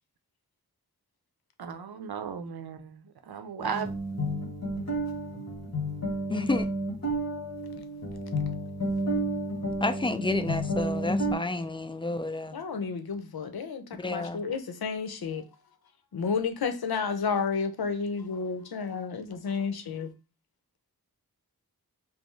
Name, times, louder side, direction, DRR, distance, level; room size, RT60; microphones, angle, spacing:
voice 1, 1.6-3.9, right 7 dB, 85° right, 0.6 m, -36 dB
sound 1, 3.6-11.4, right 1 dB, 45° left, 1.1 m, -31 dB
voice 2, 6.3-6.7 9.8-12.6 14.0-14.4, left 2 dB, 15° left, 0.4 m, -30 dB
voice 3, 12.5-15.4 16.1-20.1, left 5 dB, 80° left, 0.7 m, -31 dB
5.2 x 2.0 x 3.1 m
wide cardioid pair, 80°, 37 cm